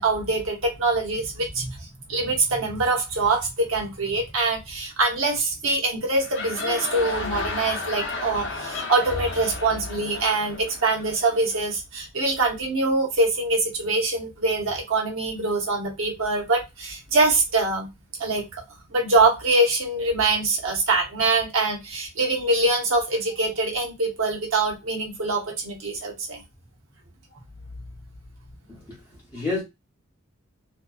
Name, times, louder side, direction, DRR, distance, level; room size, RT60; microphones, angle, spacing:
voice 1, 0.0-1.8 2.1-17.9 18.2-18.5 18.9-26.4, right 2 dB, 65° right, 0.8 m, -24 dB
sound 1, 6.1-11.6, left 3 dB, 55° left, 0.6 m, -33 dB
voice 2, 28.7-29.6, left 3 dB, 15° left, 0.8 m, -31 dB
2.6 x 2.2 x 2.3 m
head